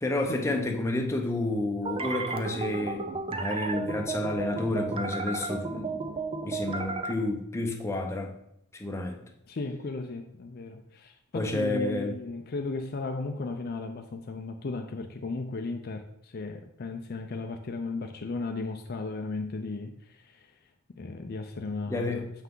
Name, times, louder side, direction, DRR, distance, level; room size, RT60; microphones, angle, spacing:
voice 1, 0.0-6.0 6.4-8.3 8.7-9.2 11.3-12.2 21.9-22.2, left 2 dB, 15° left, 2 dB, 0.7 m, -30 dB
sound 1, 1.8-7.1, right 4 dB, 25° right, 0.5 m, -33 dB
voice 2, 9.5-20.5 20.9-22.3, left 3 dB, 45° left, 5 dB, 0.5 m, -35 dB
6.9 x 5.7 x 3.8 m, 0.75 s
head